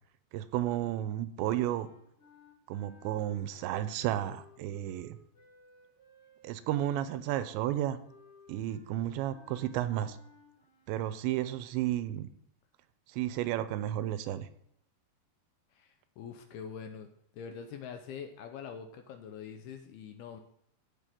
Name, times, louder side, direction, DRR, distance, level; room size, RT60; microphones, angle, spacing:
voice 1, 0.3-1.9 2.7-5.2 6.4-8.0 8.5-10.2 10.9-12.3 13.1-14.5, right 12 dB, 90° right, 12 dB, 2.9 m, -32 dB
sound 1, 1.5-11.2, left 1 dB, 20° left, 3.4 m, -60 dB
voice 2, 15.7-17.1 17.3-20.4, left 7 dB, 75° left, 6 dB, 2.4 m, -44 dB
15.0 x 6.3 x 3.7 m, 0.72 s
omnidirectional pair, 5.1 m